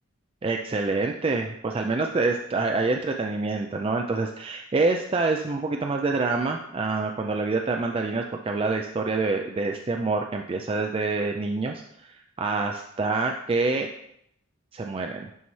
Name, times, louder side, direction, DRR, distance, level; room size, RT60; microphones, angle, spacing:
voice 1, 0.4-12.1 12.4-13.9 14.7-15.3, right 3 dB, 25° right, 3 dB, 0.3 m, -26 dB
11.0 x 4.2 x 3.1 m, 0.75 s
head